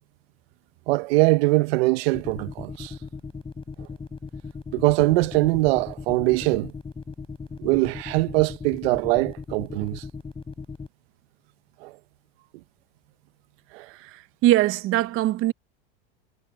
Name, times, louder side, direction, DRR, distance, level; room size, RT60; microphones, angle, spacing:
voice 1, 0.9-2.9 3.8-3.9 4.7-6.7 7.6-10.0 11.8-11.9 13.7-13.9, right 22 dB, 70° right, 1.1 m, -22 dB
sound 1, 2.1-10.9, left 4 dB, 15° left, 6.1 m, -37 dB
voice 2, 13.8-15.5, right 15 dB, 45° right, 0.9 m, -22 dB
supercardioid pair, 115°, 31 cm